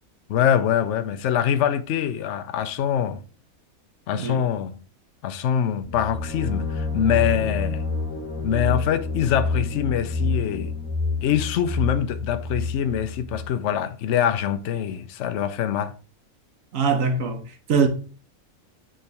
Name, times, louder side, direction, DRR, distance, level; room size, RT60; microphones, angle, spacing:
voice 1, 0.3-3.2 4.1-4.7 5.2-7.8 8.4-10.7 11.2-15.9, left 9 dB, 65° left, 0.9 m, -24 dB
voice 2, 4.1-4.4 16.7-17.9, right 5 dB, 70° right, 1.3 m, -23 dB
sound 1, 5.8-13.5, left 3 dB, 10° left, 1.1 m, -28 dB
9.1 x 3.8 x 3.3 m
omnidirectional pair, 1.5 m